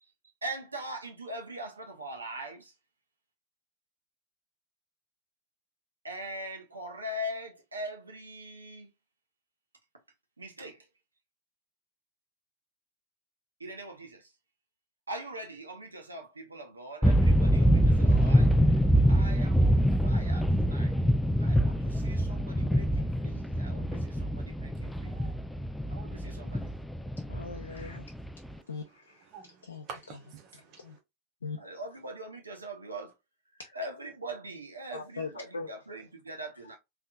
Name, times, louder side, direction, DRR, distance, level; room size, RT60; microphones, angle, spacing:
voice 1, 0.4-2.7 6.0-8.9 10.4-10.9 13.6-14.3 15.1-20.9 21.4-25.2 25.9-26.7 31.6-33.1 33.7-36.8, right 1 dB, 80° right, 0.8 m, -42 dB
sound 1, 17.0-28.5, equal, 5° left, 0.3 m, -25 dB
voice 2, 24.8-25.3 29.2-31.0, right 5 dB, 40° right, 0.9 m, -48 dB
voice 3, 27.3-28.1 28.7-29.2 29.6-29.8 30.8-31.0 31.4-31.6 33.6-33.7 34.9-35.7, left 4 dB, 70° left, 0.5 m, -40 dB
3.5 x 2.9 x 2.3 m
figure-of-eight pair, 90°, 0 cm